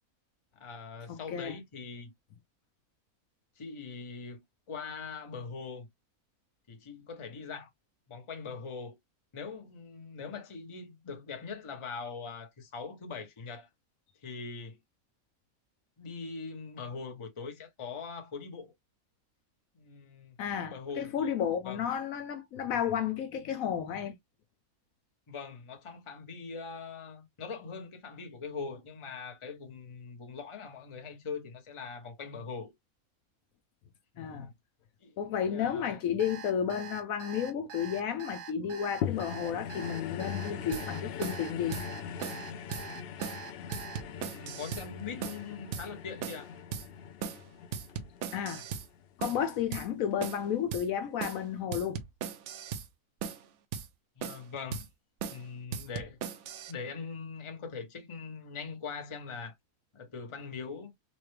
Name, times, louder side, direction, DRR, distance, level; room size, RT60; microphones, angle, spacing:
voice 1, 0.6-2.1 3.6-4.4 4.7-5.9 6.7-7.7 8.1-9.0 9.3-13.7 14.2-14.8 16.0-18.7 19.8-20.4 20.7-21.3 21.6-21.8 25.3-32.7 34.1-34.5 35.0-35.2 35.5-36.0 44.0-46.5 54.2-54.9 55.3-56.2 56.7-59.5 59.9-60.9, left 5 dB, 25° left, 0.7 m, -42 dB
voice 2, 1.1-1.6 20.4-24.1 34.2-34.5 35.2-41.8 48.3-48.6 49.2-52.0, left 8 dB, 70° left, 1.0 m, -32 dB
Alarm, 36.2-44.0, right 7 dB, 90° right, 1.8 m, -44 dB
sound 1, 39.0-49.5 50.1-50.2, left 8 dB, 85° left, 0.5 m, -41 dB
sound 2, 40.7-40.9 41.2-41.4 41.7-41.9 42.2-42.4 42.7-42.9 43.2-43.4 43.7-44.9 45.2-45.4 45.7-45.9 46.2-46.4 46.7-46.9 47.2-47.4 47.7-48.9 49.2-49.4 49.7-49.9 50.2-50.4 50.7-50.9 51.2-51.4 51.7-52.9 53.2-53.4 53.7-53.9 54.2-54.5 54.7-54.9 55.2-55.4 55.7-56.7, right 7 dB, 65° right, 0.8 m, -38 dB
4.2 x 2.1 x 3.2 m
omnidirectional pair, 1.6 m